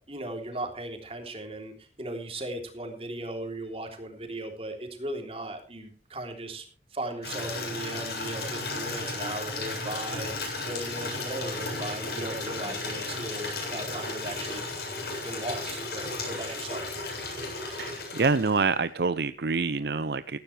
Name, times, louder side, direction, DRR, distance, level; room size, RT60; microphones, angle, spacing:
voice 1, 0.1-6.6 6.9-14.6 15.1-16.8, right 1 dB, 30° right, 3 dB, 3.4 m, -37 dB
Water tap faucet / Liquid, 7.2-18.8, left 3 dB, 65° left, 8.0 m, -34 dB
voice 2, 17.6-20.4, right 4 dB, 65° right, 13 dB, 0.6 m, -27 dB
16.0 x 15.0 x 3.3 m, 0.42 s
head